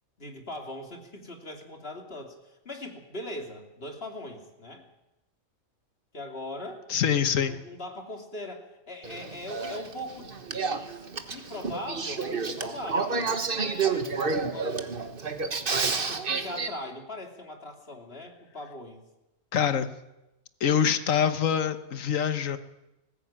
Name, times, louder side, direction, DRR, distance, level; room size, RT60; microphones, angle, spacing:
voice 1, 0.2-4.9 6.1-6.8 7.4-10.4 11.3-14.9 15.7-19.0, left 1 dB, 45° left, 3 dB, 3.0 m, -40 dB
voice 2, 6.9-7.6 19.5-19.9 20.6-22.6, left 8 dB, 70° left, 11 dB, 1.5 m, -25 dB
Male speech man speaking / Female speech woman speaking / Conversation, 9.0-16.7, right 4 dB, 40° right, 1.5 m, -30 dB
19.5 x 15.5 x 8.8 m, 0.96 s
omnidirectional pair, 1.4 m